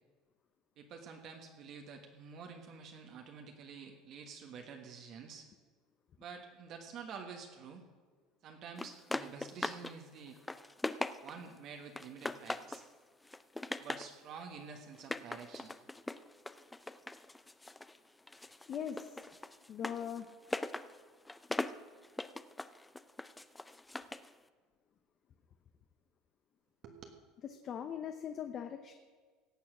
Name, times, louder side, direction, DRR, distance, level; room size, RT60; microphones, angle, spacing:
voice 1, 0.8-5.5 6.2-7.9 8.4-10.4 11.2-12.8 13.8-15.7 26.8-27.1, right 6 dB, 50° right, 3 dB, 1.4 m, -49 dB
sound 1, 8.8-9.9 10.3-11.5 11.9-12.9 13.2-14.1 14.9-18.0 18.3-24.3, left 2 dB, 10° left, 0.4 m, -41 dB
voice 2, 18.4-19.2 19.7-20.3 27.6-28.9, left 8 dB, 40° left, 7 dB, 0.8 m, -41 dB
17.5 x 7.1 x 6.1 m, 1.5 s
cardioid pair, 130°, 0 cm